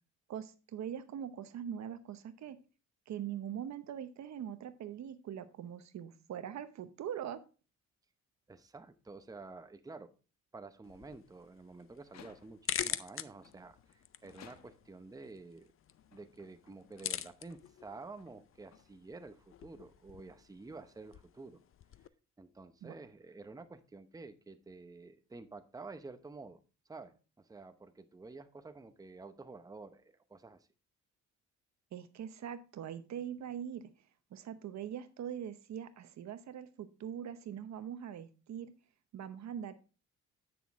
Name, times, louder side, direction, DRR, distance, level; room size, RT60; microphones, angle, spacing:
voice 1, 0.3-2.6 3.1-7.4 22.8-22.9 31.9-33.9 34.3-38.7 39.1-39.7, right 9 dB, 65° right, 12 dB, 0.9 m, -42 dB
voice 2, 8.5-10.1 10.5-15.7 16.1-21.6 22.4-26.6 26.9-30.7, right 3 dB, 10° right, 10 dB, 0.8 m, -50 dB
sound 1, 10.8-22.1, left 10 dB, 45° left, 0.5 m, -45 dB
sound 2, 12.0-12.8 13.4-15.1 15.8-19.3, left 7 dB, 60° left, 1.1 m, -61 dB
9.3 x 6.2 x 3.5 m, 0.34 s
cardioid pair, 90°, 30 cm